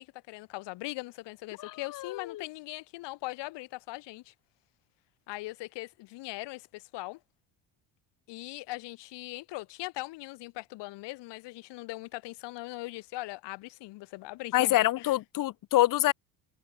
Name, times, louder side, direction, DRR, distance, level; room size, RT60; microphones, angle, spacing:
voice 1, 0.0-4.3 5.3-7.2 8.3-14.7 15.0-15.1, left 20 dB, 80° left, 2.3 m, -40 dB
voice 2, 1.6-2.4 14.5-16.1, left 15 dB, 50° left, 0.7 m, -26 dB
cardioid pair, 90°, 41 cm